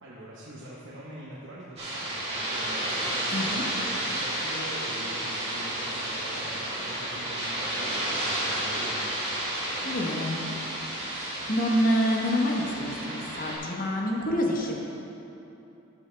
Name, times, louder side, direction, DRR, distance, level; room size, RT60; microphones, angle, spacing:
voice 1, 0.0-9.2, right 1 dB, 55° right, -7 dB, 1.1 m, -43 dB
sound 1, 1.8-13.6, right 1 dB, 25° right, 2.1 m, -31 dB
voice 2, 3.3-3.6 9.8-10.4 11.2-14.7, equal, 40° left, -1 dB, 1.1 m, -27 dB
15.0 x 6.2 x 3.4 m, 3.0 s
head